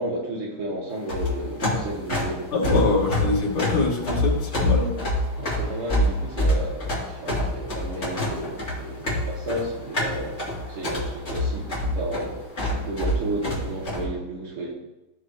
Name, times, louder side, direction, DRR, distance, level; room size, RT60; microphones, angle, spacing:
voice 1, 0.0-2.5 5.4-10.4 10.7-12.4 12.7-14.7, right 1 dB, 80° right, -2 dB, 2.8 m, -32 dB
sound 1, 1.0-14.0, left 1 dB, 35° left, 2.5 m, -26 dB
voice 2, 2.5-4.9, left 3 dB, 80° left, -4 dB, 2.8 m, -24 dB
15.0 x 6.3 x 2.8 m, 0.96 s
omnidirectional pair, 2.4 m